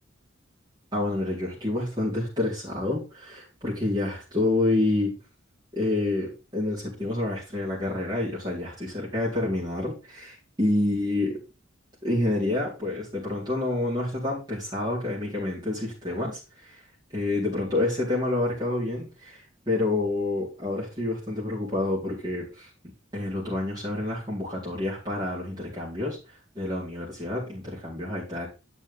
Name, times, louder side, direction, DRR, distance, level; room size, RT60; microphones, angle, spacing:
voice 1, 0.9-5.1 5.7-11.4 12.0-16.8 17.1-22.7 23.1-26.2 26.5-28.5, left 2 dB, 20° right, -10 dB, 4.5 m, -28 dB
9.4 x 6.2 x 3.7 m, 0.29 s
head